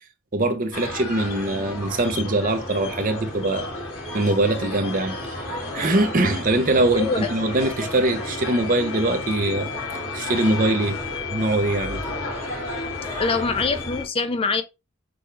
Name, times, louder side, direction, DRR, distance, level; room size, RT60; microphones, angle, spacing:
voice 1, 0.3-3.7 4.1-5.5 5.7-9.7 10.1-11.0 11.3-12.0, right 2 dB, 40° right, 0.8 m, -22 dB
sound 1, 0.7-14.0, left 2 dB, 85° left, 2.3 m, -32 dB
voice 2, 7.0-7.3 13.2-14.6, left 4 dB, 25° left, 0.4 m, -24 dB
6.2 x 2.4 x 3.3 m
head